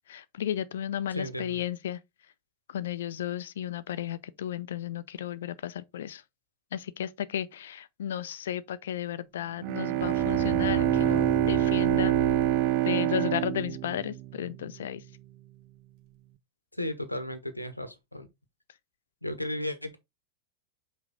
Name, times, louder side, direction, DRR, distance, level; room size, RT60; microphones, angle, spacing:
voice 1, 0.1-2.0 2.7-6.2 6.7-12.1 12.8-15.0, left 10 dB, 60° left, 0.6 m, -34 dB
voice 2, 1.1-1.6 16.8-18.3 19.2-20.0, left 1 dB, 85° left, 1.1 m, -34 dB
Bowed string instrument, 9.6-14.8, right 16 dB, 45° right, 0.5 m, -26 dB
sound 1, 10.0-13.1, left 10 dB, 35° left, 0.9 m, -37 dB
5.7 x 5.1 x 3.8 m
figure-of-eight pair, 90°, 0 cm